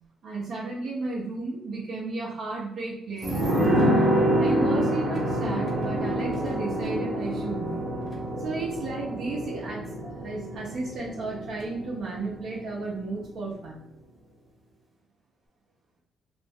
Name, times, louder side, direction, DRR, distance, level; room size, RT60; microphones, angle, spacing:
voice 1, 0.2-3.8 4.3-7.8 8.4-13.8, right 3 dB, 70° right, -7 dB, 0.7 m, -33 dB
sound 1, 3.2-12.5 12.8-12.9, right 1 dB, 30° right, 1.0 m, -27 dB
2.5 x 2.1 x 3.6 m, 0.73 s
cardioid pair, 90°, 0 cm